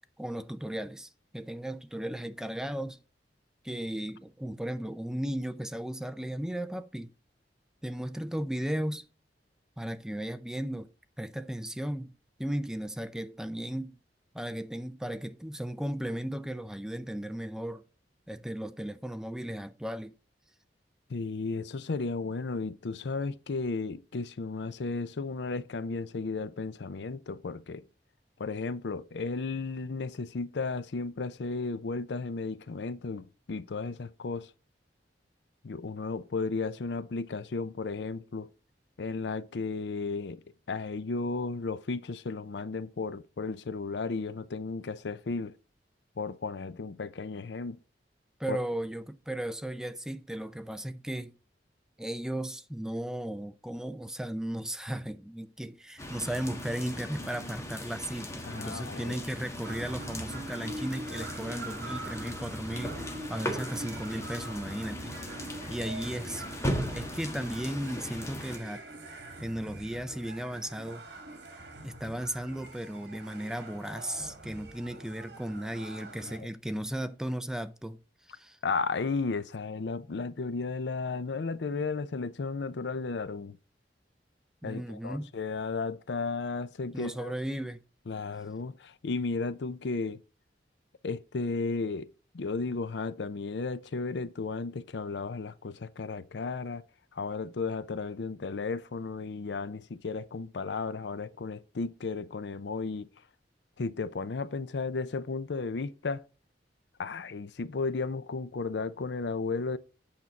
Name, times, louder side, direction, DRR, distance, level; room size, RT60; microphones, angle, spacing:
voice 1, 0.2-3.0 3.6-7.1 7.8-9.1 9.8-10.9 11.2-12.1 12.4-14.0 14.3-17.8 18.3-20.1 48.4-51.3 52.0-65.1 65.4-66.5 66.9-68.8 69.4-71.0 71.8-78.0 78.3-78.6 84.6-85.3 86.9-87.8, right 1 dB, 5° right, 0.4 m, -36 dB
voice 2, 21.1-27.8 28.4-34.5 35.6-38.5 39.0-40.4 40.7-45.5 46.2-47.8 48.5-48.6 58.4-59.2 78.6-83.6 84.6-87.3 88.1-90.2 91.0-92.1 92.3-96.8 97.1-103.1 103.8-106.2 107.0-109.8, left 4 dB, 75° left, 0.5 m, -34 dB
sound 1, 56.0-68.6, equal, 15° left, 1.3 m, -38 dB
sound 2, 59.6-76.4, right 2 dB, 70° right, 2.2 m, -44 dB
8.5 x 5.9 x 4.0 m
head